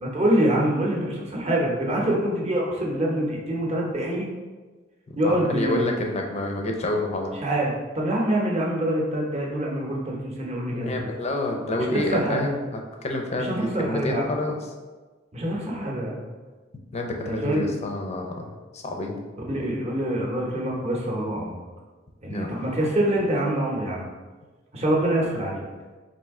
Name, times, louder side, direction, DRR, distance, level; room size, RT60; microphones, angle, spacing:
voice 1, 0.0-4.3 5.1-6.0 7.4-10.9 11.9-12.4 13.4-14.2 15.3-16.3 17.2-17.7 19.5-21.6 22.2-24.1 24.7-25.6, right 1 dB, 35° right, -2 dB, 0.8 m, -25 dB
voice 2, 5.1-7.3 10.7-14.6 16.9-19.2 22.3-22.7, left 2 dB, 35° left, 2 dB, 0.5 m, -28 dB
4.2 x 2.7 x 3.6 m, 1.3 s
head